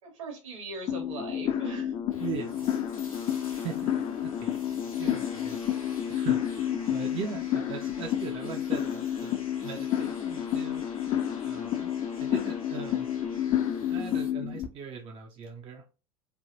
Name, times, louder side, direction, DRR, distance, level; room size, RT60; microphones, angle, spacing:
voice 1, 0.0-1.9 7.0-7.2, right 3 dB, 65° right, 3 dB, 1.3 m, -40 dB
sound 1, 0.9-14.7, left 10 dB, 30° left, 0.4 m, -30 dB
sound 2, 2.1-14.3, left 2 dB, 85° left, 0.9 m, -49 dB
voice 2, 2.2-2.7 3.5-4.5 5.0-10.8 11.4-11.9 12.2-13.1 13.8-15.9, right 6 dB, 30° right, 3 dB, 0.5 m, -40 dB
3.3 x 2.1 x 2.6 m, 0.32 s
figure-of-eight pair, 80°, 17 cm